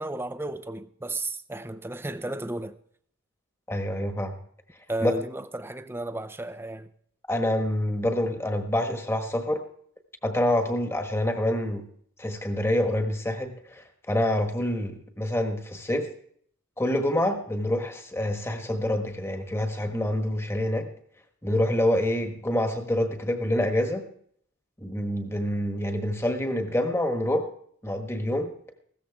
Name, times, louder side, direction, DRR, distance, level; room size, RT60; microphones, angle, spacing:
voice 1, 0.0-2.8 4.9-6.9, right 2 dB, 10° right, 0.6 m, -33 dB
voice 2, 3.7-4.3 5.0-5.1 7.3-9.6 10.2-11.9 12.2-16.1 16.8-20.9 21.4-24.0 24.8-27.5 27.8-28.5, left 1 dB, 10° left, 1.3 m, -26 dB
16.0 x 13.5 x 3.5 m
head